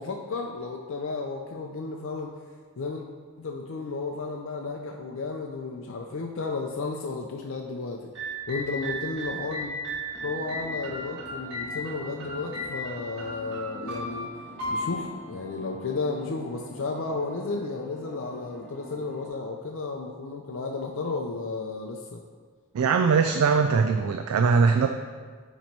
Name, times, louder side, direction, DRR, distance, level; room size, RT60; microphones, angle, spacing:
voice 1, 0.0-2.3 2.8-3.1 3.4-8.1 8.5-9.7 10.2-14.3 14.7-22.2, left 3 dB, 60° left, 1 dB, 0.5 m, -33 dB
sound 1, 8.2-16.2, equal, 50° right, 1.6 m, -35 dB
sound 2, 10.1-19.3, left 1 dB, 5° left, 0.9 m, -46 dB
voice 2, 22.7-24.9, right 5 dB, 80° right, 6 dB, 0.4 m, -21 dB
9.2 x 3.1 x 4.5 m, 1.6 s
head